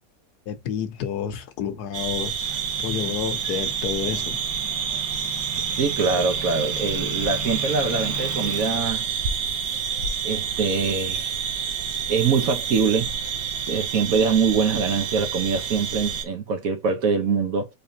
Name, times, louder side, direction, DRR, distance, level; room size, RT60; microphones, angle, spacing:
voice 1, 0.5-4.4, left 8 dB, 75° left, 1.3 m, -30 dB
sound 1, 1.9-16.2, right 7 dB, 90° right, 1.3 m, -28 dB
Motor vehicle (road) / Engine, 2.4-8.8, right 1 dB, 25° right, 0.4 m, -38 dB
voice 2, 5.8-9.1 10.2-11.3 12.1-13.1 13.7-17.7, right 5 dB, 60° right, 1.3 m, -23 dB
4.2 x 3.5 x 2.7 m
omnidirectional pair, 1.7 m